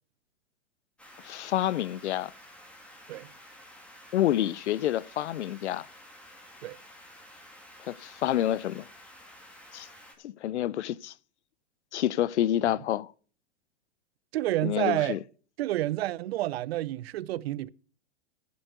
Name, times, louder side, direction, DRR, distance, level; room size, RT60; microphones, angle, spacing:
sound 1, 1.0-10.1, left 1 dB, 5° left, 2.8 m, -51 dB
voice 1, 1.2-2.3 4.1-5.9 7.9-8.9 9.7-9.9 10.2-11.1 11.9-13.1 14.6-15.2, left 12 dB, 80° left, 0.7 m, -28 dB
voice 2, 14.3-15.2 15.6-17.7, right 15 dB, 65° right, 0.7 m, -29 dB
10.5 x 9.5 x 6.8 m
hypercardioid pair, 135°, 34 cm